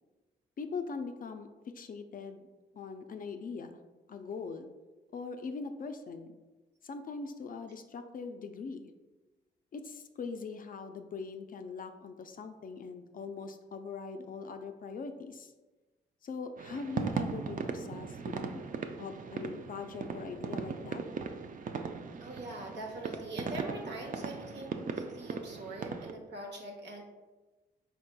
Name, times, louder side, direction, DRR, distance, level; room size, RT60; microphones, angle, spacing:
voice 1, 0.6-1.5 1.7-2.4 2.7-3.8 4.1-4.7 5.1-6.4 6.8-8.9 9.7-15.5 16.2-18.6 19.0-21.0, left 4 dB, 45° left, 7 dB, 0.4 m, -41 dB
sound 1, 16.6-26.1, right 5 dB, 45° right, 0.4 m, -38 dB
voice 2, 22.2-27.0, right 1 dB, 60° right, 1 dB, 0.9 m, -43 dB
4.3 x 3.8 x 2.2 m, 1.2 s
supercardioid pair, 50°, 20 cm